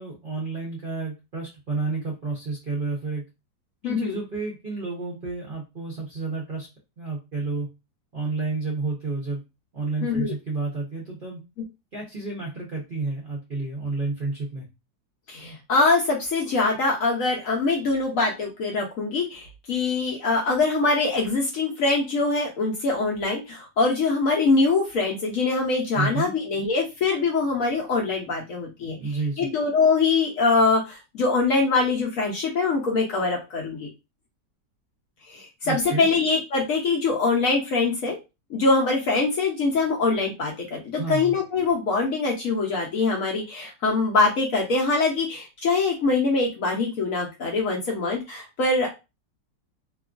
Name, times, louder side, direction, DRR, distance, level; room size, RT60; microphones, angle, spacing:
voice 1, 0.0-3.2 3.8-6.7 7.0-7.7 8.1-9.4 9.7-11.4 11.9-14.7 25.9-26.3 29.0-29.5 35.6-36.1 41.0-41.3, right 3 dB, 45° right, -3 dB, 0.7 m, -30 dB
voice 2, 3.8-4.2 10.0-10.3 15.3-29.0 29.4-33.9 35.3-38.2 38.5-48.9, left 3 dB, 65° left, -1 dB, 0.9 m, -23 dB
2.9 x 2.4 x 2.4 m, 0.25 s
omnidirectional pair, 1.9 m